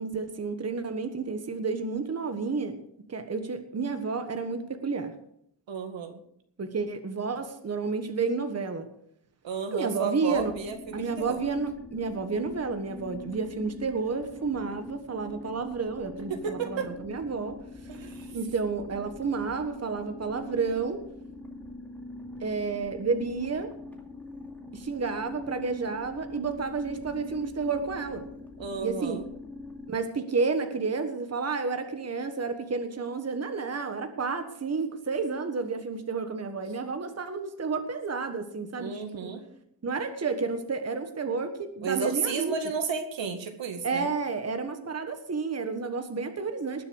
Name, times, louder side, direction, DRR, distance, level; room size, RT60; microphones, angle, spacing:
voice 1, 0.0-2.8 3.1-5.1 6.6-8.9 9.7-10.5 10.9-17.6 18.3-21.0 22.4-23.7 24.7-28.3 28.8-29.2 29.9-39.4 39.8-42.5 43.8-46.8, right 4 dB, 35° right, 8 dB, 1.5 m, -31 dB
voice 2, 5.7-6.2 9.4-11.4 16.3-16.9 17.9-18.3 28.6-29.3 38.8-39.4 41.8-44.1, right 5 dB, 80° right, 6 dB, 2.1 m, -32 dB
sound 1, 10.3-29.9, left 2 dB, 5° left, 2.4 m, -43 dB
19.5 x 6.8 x 6.4 m, 0.72 s
wide cardioid pair, 125°, 44 cm